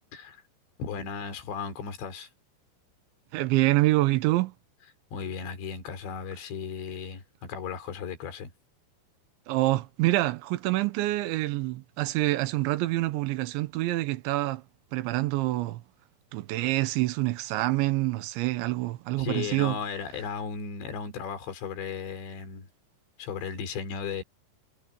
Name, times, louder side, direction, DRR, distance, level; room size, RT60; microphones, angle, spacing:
voice 1, 0.1-0.4 0.8-2.3 5.1-8.5 19.2-22.7 23.2-24.2, left 6 dB, 75° left, 6.1 m, -35 dB
voice 2, 3.3-4.5 9.5-14.6 14.9-15.8 16.3-19.8, right 18 dB, 85° right, 3.3 m, -26 dB
omnidirectional pair, 5.2 m